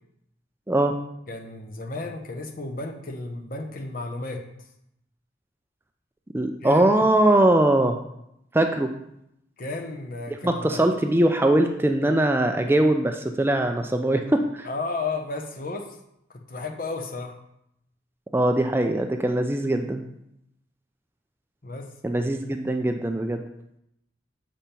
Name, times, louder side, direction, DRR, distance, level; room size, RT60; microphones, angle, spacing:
voice 1, 1.3-4.4 6.6-7.0 9.6-10.8 14.6-16.0 16.3-17.4 21.6-21.9, left 3 dB, 50° left, 4 dB, 0.9 m, -33 dB
voice 2, 6.3-8.0 8.5-8.9 10.4-14.7 18.3-20.0 22.0-23.4, right 1 dB, 10° right, 5 dB, 0.4 m, -21 dB
7.2 x 5.3 x 4.3 m, 0.80 s
head